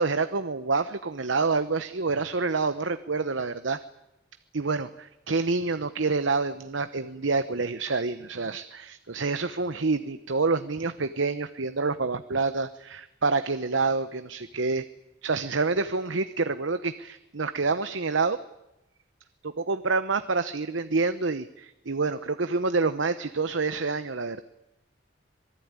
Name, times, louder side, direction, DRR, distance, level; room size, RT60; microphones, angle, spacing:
voice 1, 0.0-3.8 4.5-14.8 15.2-18.4 19.4-24.4, right 4 dB, 75° right, 11 dB, 0.9 m, -27 dB
26.0 x 19.5 x 9.7 m, 0.91 s
head